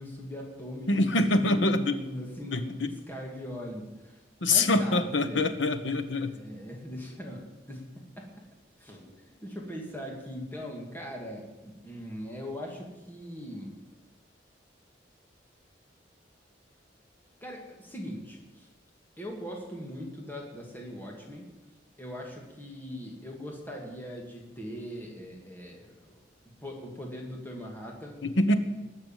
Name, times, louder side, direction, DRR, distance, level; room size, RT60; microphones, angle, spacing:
voice 1, 0.0-5.5 6.3-8.3 8.8-13.7 17.4-18.7 19.2-21.5 22.0-26.2 26.6-28.2, equal, 10° left, -1 dB, 2.5 m, -40 dB
voice 2, 0.9-1.9 2.5-2.9 4.4-6.4 28.2-28.6, left 2 dB, 85° left, 9 dB, 1.2 m, -25 dB
20.0 x 6.8 x 9.1 m, 1.1 s
head